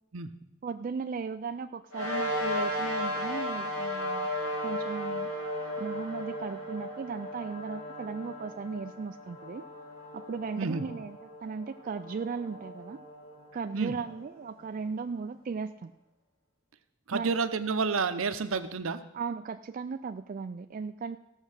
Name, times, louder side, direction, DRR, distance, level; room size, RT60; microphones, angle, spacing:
voice 1, 0.6-4.3 4.6-5.3 5.8-9.6 10.1-11.2 11.4-13.0 13.5-15.9 17.1-17.4 19.1-21.2, right 5 dB, 40° right, 8 dB, 0.3 m, -36 dB
sound 1, 1.9-14.6, equal, 75° left, 2.2 m, -36 dB
voice 2, 17.1-19.0, right 4 dB, 75° right, 11 dB, 0.7 m, -30 dB
15.5 x 6.3 x 6.4 m, 0.95 s
head